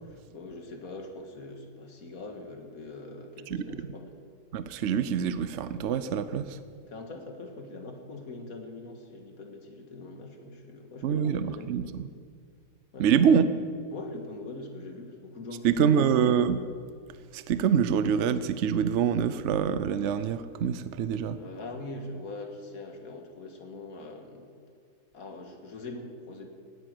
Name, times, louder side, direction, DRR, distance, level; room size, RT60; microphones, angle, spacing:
voice 1, 0.1-4.2 6.5-6.6 6.9-11.8 12.9-13.4 13.9-16.1 21.3-24.6 25.1-26.5, left 2 dB, 90° left, 4 dB, 2.2 m, -42 dB
voice 2, 4.5-6.6 11.0-11.9 13.0-13.5 15.6-16.6 17.3-21.4, right 7 dB, 60° right, 12 dB, 0.9 m, -25 dB
18.5 x 9.7 x 7.7 m, 2.1 s
omnidirectional pair, 1.5 m